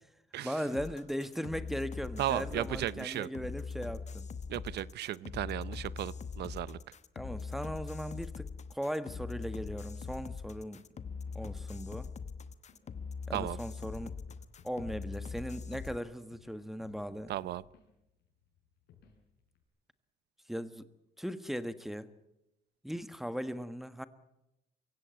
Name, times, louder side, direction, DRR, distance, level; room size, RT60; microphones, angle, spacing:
voice 1, 0.4-4.2 7.1-10.8 11.3-12.1 13.3-14.2 14.6-17.3 20.5-20.9 21.2-22.1 22.8-24.0, equal, ahead, 12 dB, 1.4 m, -38 dB
sound 1, 0.7-16.0, left 5 dB, 40° left, 1.1 m, -42 dB
voice 2, 2.2-3.3 4.5-6.8 13.3-13.6 17.3-17.6, right 13 dB, 80° right, 19 dB, 0.7 m, -35 dB
sound 2, 10.0-19.6, left 5 dB, 85° left, 6.2 m, -63 dB
23.5 x 16.5 x 9.4 m, 0.89 s
cardioid pair, 105°, 17 cm